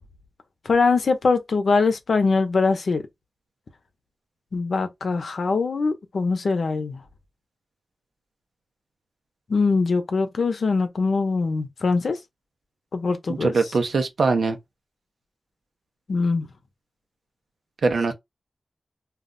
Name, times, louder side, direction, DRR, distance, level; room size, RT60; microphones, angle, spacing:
voice 1, 0.7-3.0 4.5-7.0 9.5-12.2 12.9-13.5 16.1-16.5, left 4 dB, 80° left, 0.6 m, -22 dB
voice 2, 13.3-14.6 17.8-18.1, right 4 dB, 90° right, 0.6 m, -22 dB
2.4 x 2.1 x 3.7 m
cardioid pair, 60°, 0 cm